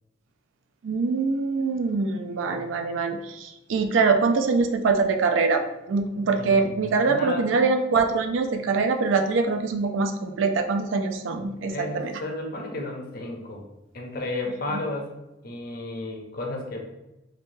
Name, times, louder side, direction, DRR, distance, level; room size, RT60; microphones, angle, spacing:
voice 1, 0.8-5.6 5.9-12.1, right 4 dB, 85° right, 6 dB, 0.3 m, -24 dB
voice 2, 6.4-7.5 11.7-13.6 13.9-15.1 15.4-16.8, left 2 dB, 55° left, 1 dB, 0.6 m, -33 dB
3.1 x 2.1 x 2.6 m, 0.94 s
head